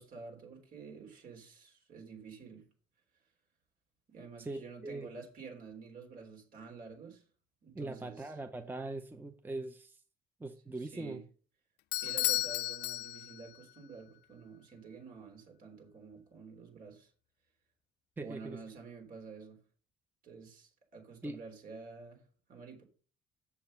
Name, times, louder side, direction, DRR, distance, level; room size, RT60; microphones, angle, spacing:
voice 1, 0.0-2.6 4.1-7.2 7.6-8.3 10.8-11.2 11.9-17.1 18.2-19.6 20.2-22.2 22.5-22.8, right 5 dB, 55° right, 3.7 m, -49 dB
voice 2, 4.4-5.1 7.7-10.0 10.4-11.2 18.2-18.6 21.2-21.4, right 2 dB, 10° right, 0.7 m, -41 dB
Bell / Doorbell, 11.9-13.6, left 19 dB, 80° left, 0.4 m, -33 dB
7.2 x 7.0 x 5.4 m
cardioid pair, 110°, 17 cm